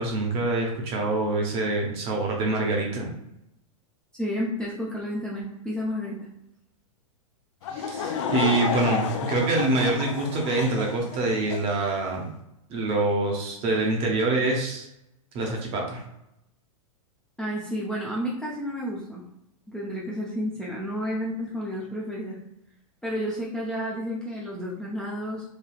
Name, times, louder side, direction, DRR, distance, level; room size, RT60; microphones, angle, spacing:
voice 1, 0.0-3.1 7.7-12.3 12.7-14.9 15.3-16.0, right 2 dB, 35° right, 0 dB, 0.8 m, -25 dB
voice 2, 4.2-6.3 17.4-19.2 19.7-22.4 23.0-25.4, equal, 5° left, -6 dB, 0.5 m, -31 dB
Laughter / Crowd, 7.6-11.8, left 6 dB, 60° left, 0.4 m, -31 dB
3.2 x 2.3 x 2.3 m, 0.82 s
hypercardioid pair, 120°, 18 cm